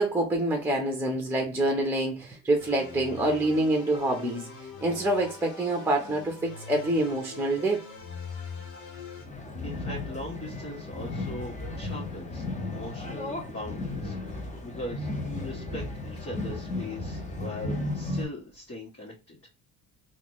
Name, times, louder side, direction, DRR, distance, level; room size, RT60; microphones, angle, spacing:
voice 1, 0.0-4.5 4.8-7.8, right 1 dB, 5° right, 0.9 m, -26 dB
sound 1, 2.6-9.3, left 4 dB, 85° left, 1.3 m, -42 dB
sound 2, 9.3-18.3, left 2 dB, 20° left, 1.0 m, -35 dB
voice 2, 9.6-19.4, left 1 dB, 35° left, 1.7 m, -40 dB
3.8 x 2.6 x 3.0 m
supercardioid pair, 85°, 40 cm